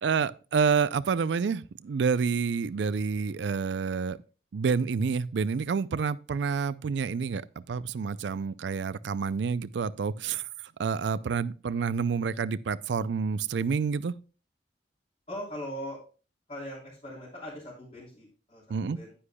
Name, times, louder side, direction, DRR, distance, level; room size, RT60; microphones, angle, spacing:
voice 1, 0.0-4.2 4.5-10.5 10.8-14.1 18.7-19.0, right 5 dB, 80° right, 0.4 m, -28 dB
voice 2, 15.3-16.0 16.5-19.1, equal, 35° left, 3.3 m, -40 dB
10.0 x 9.7 x 2.2 m
head